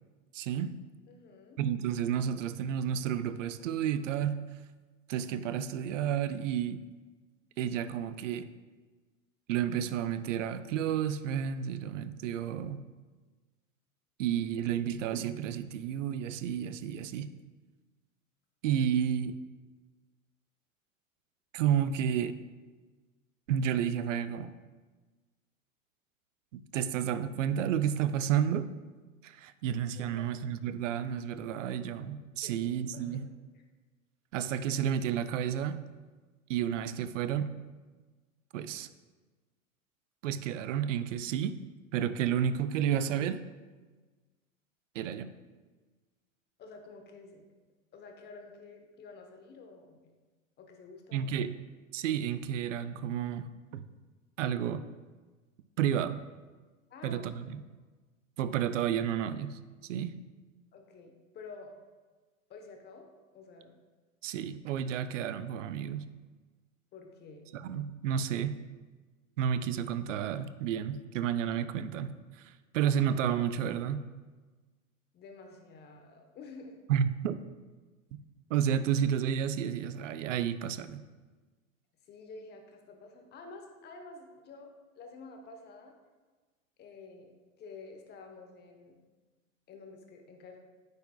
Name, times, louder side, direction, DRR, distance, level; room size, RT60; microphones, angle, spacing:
voice 1, 0.3-0.8 1.6-4.4 5.1-6.8 7.6-8.5 9.5-12.8 14.2-17.3 18.6-19.4 21.5-22.4 23.5-24.5 26.5-28.7 29.2-33.2 34.3-35.8 36.5-37.5 38.5-38.9 40.2-41.6 41.9-43.4 44.9-45.4 51.1-51.5 51.9-53.9 54.4-54.8 55.8-56.2 57.0-57.6 58.4-60.2 64.2-66.1 67.5-68.6 69.4-74.0 76.9-77.4 78.5-81.0, right 9 dB, 65° right, 13 dB, 0.5 m, -31 dB
voice 2, 1.1-1.6 30.0-30.3 32.4-33.6 46.6-47.5 47.9-50.1 50.6-51.4 56.9-57.3 60.7-61.7 62.5-63.1 63.3-63.7 66.9-67.5 75.1-76.8 82.0-84.7 85.0-85.9 86.8-89.0 89.7-90.6, left 3 dB, 25° left, 3 dB, 0.9 m, -50 dB
9.4 x 4.5 x 2.2 m, 1.3 s
figure-of-eight pair, 95°, 41 cm